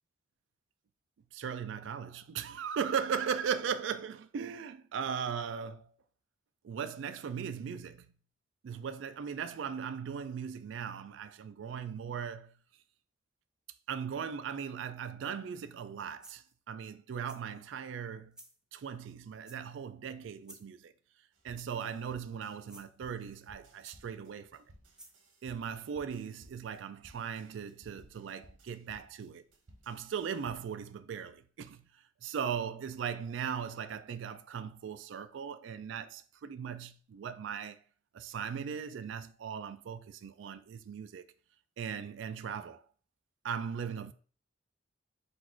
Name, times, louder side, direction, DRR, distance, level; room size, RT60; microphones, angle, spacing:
voice 1, 1.3-5.9 6.6-8.1 8.6-12.6 13.9-18.4 18.7-20.9 21.4-24.6 25.4-29.4 29.9-31.8 32.2-37.8 38.1-41.3 41.8-42.9 43.4-44.1, right 7 dB, 70° right, 0.3 m, -38 dB
sound 1, 15.8-15.9 16.2-16.6 17.3-17.6 18.3-18.6 19.4-19.9 20.4-20.8 21.5-22.0 22.6-22.9 23.8-24.3 24.9-25.2, right 1 dB, 5° right, 0.4 m, -55 dB
sound 2, 21.3-30.8, right 1 dB, 90° right, 1.0 m, -60 dB
4.2 x 2.4 x 4.3 m
head